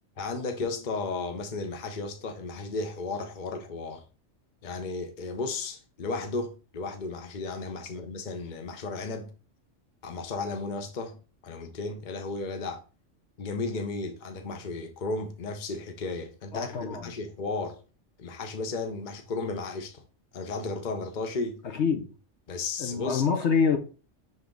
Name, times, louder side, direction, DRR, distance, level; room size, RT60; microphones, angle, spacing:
voice 1, 0.2-4.0 4.6-9.3 10.0-11.2 11.4-12.8 13.4-17.8 18.2-20.0 20.3-21.6 22.5-23.2, left 3 dB, 40° left, 0.9 m, -34 dB
voice 2, 16.5-17.1 21.7-22.1 22.8-23.8, left 6 dB, 65° left, 1.1 m, -26 dB
7.1 x 3.5 x 3.8 m
omnidirectional pair, 1.3 m